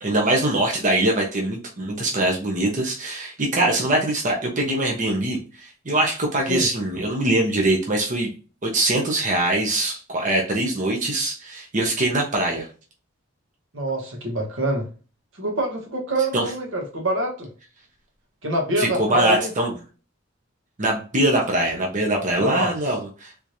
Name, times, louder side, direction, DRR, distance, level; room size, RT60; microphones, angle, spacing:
voice 1, 0.0-8.3 8.6-12.7 16.3-16.5 18.8-19.7 20.8-23.3, right 1 dB, 40° right, 0.9 m, -22 dB
voice 2, 13.7-14.9 15.4-17.5 18.4-19.5 22.4-22.7, right 1 dB, 80° right, 1.2 m, -25 dB
3.6 x 3.1 x 2.7 m
head